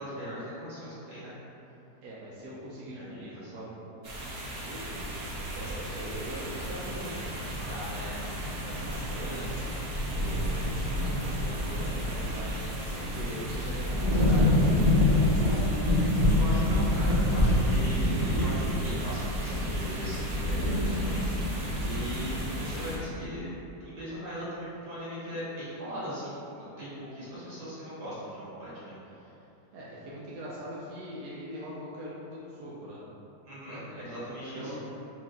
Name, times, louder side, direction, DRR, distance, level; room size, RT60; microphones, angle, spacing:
voice 1, 0.0-1.3 2.9-3.6 15.3-15.6 16.2-23.5 23.8-29.3 33.4-34.7, equal, 90° right, -10 dB, 2.1 m, -39 dB
voice 2, 2.0-8.2 8.6-9.8 10.2-10.6 11.2-15.6 29.7-33.0 33.7-34.0 34.5-34.9, right 1 dB, 75° right, -7 dB, 1.2 m, -41 dB
sound 1, 4.0-23.0, left 1 dB, 50° right, 0.8 m, -28 dB
4.4 x 2.9 x 3.6 m, 2.9 s
omnidirectional pair, 1.8 m